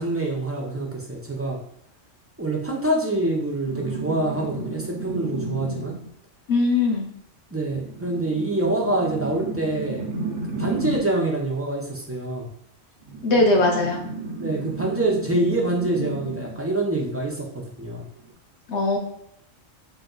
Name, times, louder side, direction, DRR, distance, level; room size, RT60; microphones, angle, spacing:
voice 1, 0.0-1.6 2.4-6.0 7.5-10.1 10.6-12.5 14.4-18.1, right 2 dB, 15° right, -2 dB, 0.4 m, -26 dB
sound 1, 3.6-6.1 7.7-11.2 13.0-16.6 18.2-18.3, right 2 dB, 75° right, 1.1 m, -33 dB
voice 2, 6.5-7.1 13.2-14.0 18.7-19.0, left 2 dB, 60° left, 1 dB, 1.1 m, -20 dB
4.0 x 2.2 x 3.9 m, 0.70 s
omnidirectional pair, 1.4 m